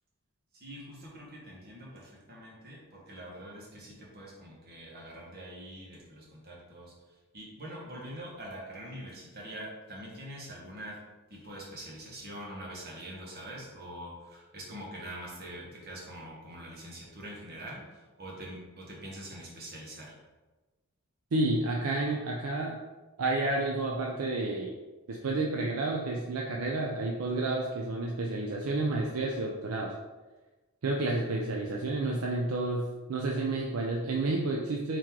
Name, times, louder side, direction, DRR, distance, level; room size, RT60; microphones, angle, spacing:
voice 1, 0.5-6.9 7.3-11.0 11.3-20.1, right 1 dB, 45° right, -3 dB, 1.3 m, -44 dB
voice 2, 21.3-22.8 23.2-24.7 25.1-29.9 30.8-32.8 33.1-35.0, right 2 dB, 70° right, -1 dB, 0.5 m, -30 dB
3.7 x 3.0 x 4.5 m, 1.2 s
head